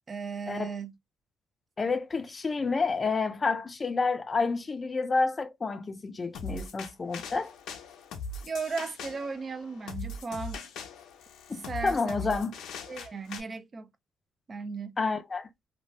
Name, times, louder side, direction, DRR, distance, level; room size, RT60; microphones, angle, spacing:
voice 1, 0.1-0.9 8.4-10.6 11.7-12.2 12.9-13.9 14.5-15.0, right 4 dB, 35° right, 0.4 m, -36 dB
voice 2, 1.8-7.5 11.5-12.5 15.0-15.5, left 4 dB, 30° left, 0.5 m, -29 dB
sound 1, 6.3-13.4, left 3 dB, 80° left, 0.6 m, -40 dB
2.6 x 2.2 x 3.1 m
cardioid pair, 90°, 0 cm